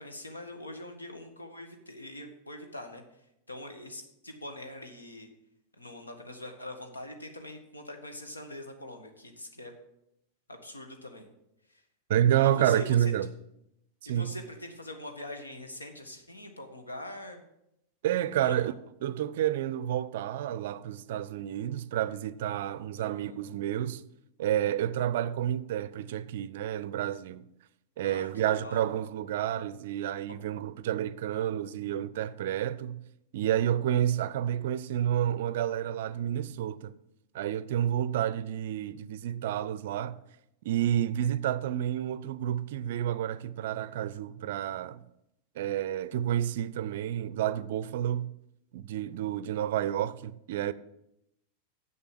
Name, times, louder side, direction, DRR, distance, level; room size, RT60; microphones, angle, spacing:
voice 1, 0.0-3.0 3.5-5.3 5.8-9.7 10.5-11.3 11.7-11.8 12.4-13.1 14.0-17.4 18.3-18.7 22.9-23.4 28.0-28.9, left 1 dB, 80° left, 1.5 m, -43 dB
voice 2, 12.1-13.3 14.1-14.3 18.0-18.7 19.0-24.0 24.4-27.5 28.0-33.0 33.3-36.9 37.3-40.2 40.6-45.0 45.6-48.3 48.7-50.7, right 11 dB, 55° right, 0.4 m, -29 dB
7.6 x 6.8 x 7.6 m
figure-of-eight pair, 90°, 0 cm